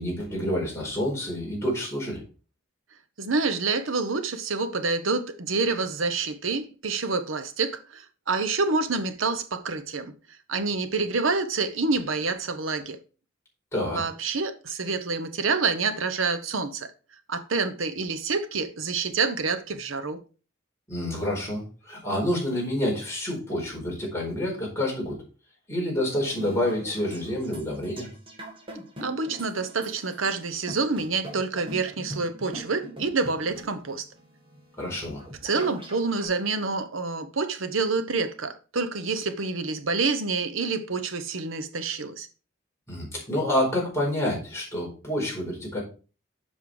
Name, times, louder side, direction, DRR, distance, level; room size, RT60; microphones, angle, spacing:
voice 1, 0.0-2.2 13.7-14.0 20.9-25.2 25.7-28.1 34.8-35.2 42.9-45.8, left 1 dB, 15° left, 4.5 m, -28 dB
voice 2, 3.2-10.1 10.5-13.0 13.8-16.9 17.3-20.2 29.0-34.1 35.4-42.3, right 4 dB, 85° right, 1.0 m, -27 dB
sound 1, 26.1-36.3, equal, 25° right, 2.0 m, -42 dB
7.3 x 5.4 x 4.8 m
head